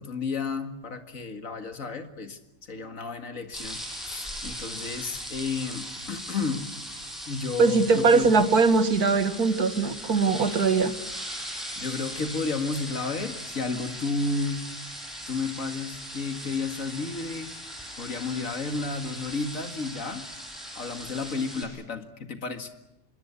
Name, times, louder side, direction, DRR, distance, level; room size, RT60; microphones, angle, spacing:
voice 1, 0.0-2.4 2.7-6.7 7.3-8.3 11.8-14.7 15.3-17.5 18.0-20.3 20.7-22.7, left 4 dB, 50° left, 7 dB, 2.3 m, -32 dB
sound 1, 3.5-21.6, equal, ahead, 7.0 m, -39 dB
voice 2, 7.6-10.9, right 4 dB, 65° right, 10 dB, 2.1 m, -21 dB
27.0 x 23.0 x 8.3 m, 0.93 s
omnidirectional pair, 1.8 m